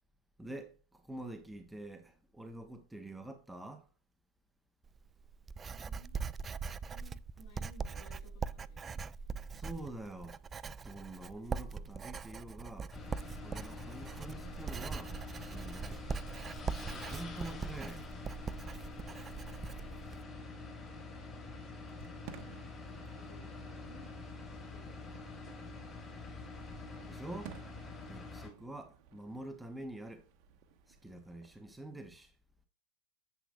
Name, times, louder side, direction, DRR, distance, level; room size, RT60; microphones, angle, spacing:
voice 1, 0.4-3.9 9.5-10.4 10.8-12.9 13.4-16.0 16.7-18.1 27.1-27.6 28.1-30.2 30.9-32.3, right 1 dB, 5° right, 0.9 m, -46 dB
Writing, 4.8-20.2, right 5 dB, 20° right, 0.3 m, -42 dB
voice 2, 5.7-6.2 6.9-9.0 21.1-22.3 23.1-24.1 24.5-24.9 25.4-25.9, left 1 dB, 55° left, 3.8 m, -60 dB
sound 1, 12.9-28.5, left 3 dB, 20° left, 3.5 m, -46 dB
Fireworks, 21.9-31.8, right 8 dB, 45° right, 1.0 m, -56 dB
10.0 x 8.1 x 2.4 m
figure-of-eight pair, 90°, 0 cm